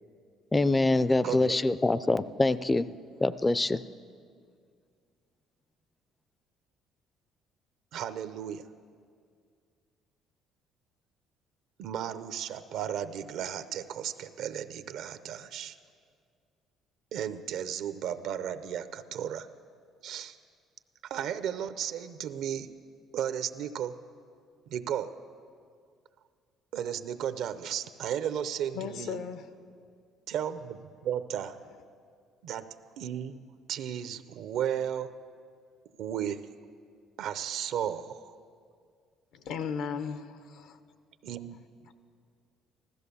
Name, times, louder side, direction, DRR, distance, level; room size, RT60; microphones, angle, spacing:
voice 1, 0.5-2.9 3.2-3.8, left 2 dB, 15° left, 16 dB, 0.4 m, -25 dB
voice 2, 1.2-1.6 7.9-8.7 11.8-15.8 17.1-19.5 20.0-20.4 21.0-22.7 23.1-23.9 24.7-25.1 26.7-29.2 30.3-31.6 32.4-33.4 33.7-35.1 36.0-36.4 37.2-38.4 41.2-41.6 41.8-41.9, right 9 dB, 70° right, 12 dB, 0.7 m, -34 dB
voice 3, 28.7-29.5 39.3-40.8, left 6 dB, 75° left, 10 dB, 0.8 m, -36 dB
15.0 x 13.5 x 6.9 m, 2.1 s
cardioid pair, 125°, 0 cm